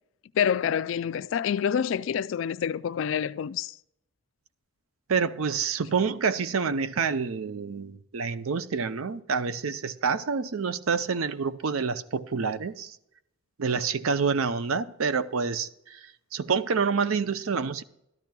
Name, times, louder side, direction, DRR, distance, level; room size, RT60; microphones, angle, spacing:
voice 1, 0.3-3.7, left 8 dB, 65° left, 0.3 m, -27 dB
voice 2, 5.1-13.0 13.6-17.8, right 5 dB, 80° right, 0.6 m, -28 dB
13.5 x 12.0 x 2.3 m
head